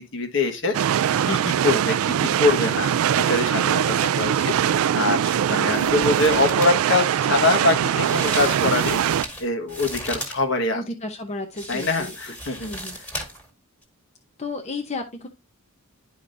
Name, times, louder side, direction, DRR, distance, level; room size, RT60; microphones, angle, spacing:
voice 1, 0.1-9.0 9.4-10.8 11.7-12.7, left 3 dB, 60° left, 1.5 m, -24 dB
sound 1, 0.7-9.3, right 9 dB, 85° right, 0.3 m, -22 dB
sound 2, 5.3-5.4 5.7-6.8 8.0-10.4 11.6-13.5 13.8-13.9, equal, 5° left, 2.0 m, -36 dB
voice 2, 10.7-12.1 12.6-13.0 14.4-15.3, left 2 dB, 30° left, 0.8 m, -32 dB
11.0 x 5.1 x 2.6 m
head